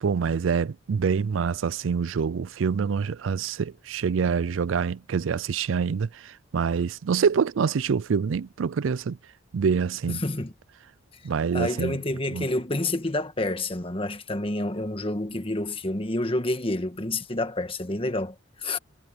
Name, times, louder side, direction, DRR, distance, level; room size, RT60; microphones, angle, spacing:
voice 1, 0.0-6.1 6.5-9.2 9.5-10.2 11.2-12.0 12.3-12.5, right 6 dB, 90° right, 0.4 m, -26 dB
voice 2, 10.1-10.5 11.5-18.8, left 2 dB, 30° left, 1.5 m, -28 dB
head